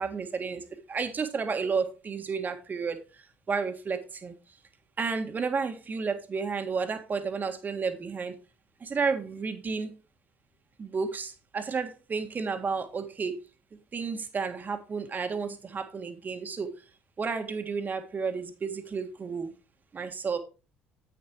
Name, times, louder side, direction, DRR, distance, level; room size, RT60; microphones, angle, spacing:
voice 1, 0.0-4.3 5.0-8.4 8.8-9.9 10.8-13.4 13.9-16.7 17.2-19.5 19.9-20.4, right 5 dB, 35° right, 1.7 m, -32 dB
9.3 x 8.5 x 3.0 m
figure-of-eight pair, 55°, 5 cm